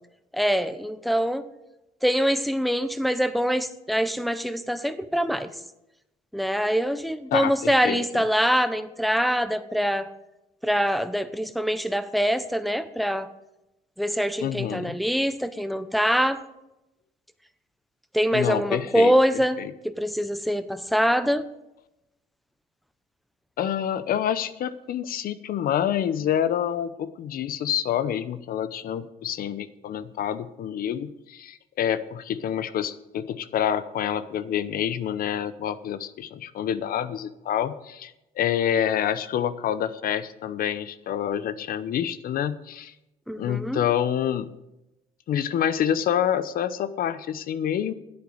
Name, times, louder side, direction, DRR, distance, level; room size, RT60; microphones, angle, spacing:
voice 1, 0.3-1.5 2.0-5.5 6.3-10.1 10.6-13.3 14.0-16.4 18.1-19.6 19.8-21.5 43.3-43.8, equal, ahead, 13 dB, 0.9 m, -24 dB
voice 2, 7.3-8.2 14.4-14.9 18.3-19.1 19.6-19.7 23.6-42.9 43.4-44.5 45.3-47.9, left 9 dB, 60° left, 15 dB, 0.9 m, -27 dB
10.5 x 8.6 x 8.1 m, 0.91 s
cardioid pair, 110°, 17 cm